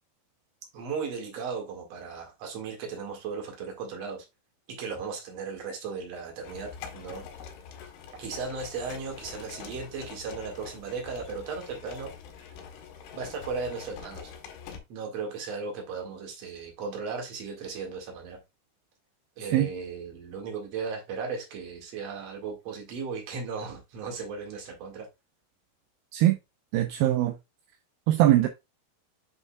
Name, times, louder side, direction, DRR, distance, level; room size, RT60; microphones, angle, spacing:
voice 1, 0.7-4.2 4.8-7.2 8.2-12.1 13.1-14.3 14.9-18.4 19.4-25.1, right 5 dB, 50° right, 2.6 m, -36 dB
sound 1, 6.4-14.8, left 7 dB, 80° left, 3.1 m, -44 dB
voice 2, 26.7-27.3 28.1-28.5, right 13 dB, 80° right, 2.2 m, -21 dB
8.4 x 5.4 x 2.3 m
omnidirectional pair, 4.6 m